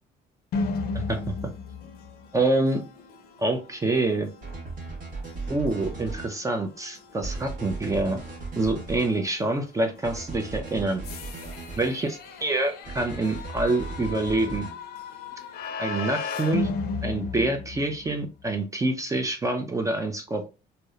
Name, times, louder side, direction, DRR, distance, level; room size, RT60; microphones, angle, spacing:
sound 1, 0.5-18.2, left 4 dB, 65° left, 0.5 m, -36 dB
voice 1, 0.9-1.5 2.3-2.8 3.4-4.3 5.5-8.2 8.6-11.0 11.8-14.7 15.8-16.7 17.0-20.5, right 2 dB, 20° right, 5 dB, 0.4 m, -26 dB
sound 2, 4.4-6.3 7.2-9.1 10.0-11.9 12.8-14.7, right 3 dB, 50° right, 1.1 m, -37 dB
2.8 x 2.0 x 2.3 m, 0.29 s
cardioid pair, 110°, 17 cm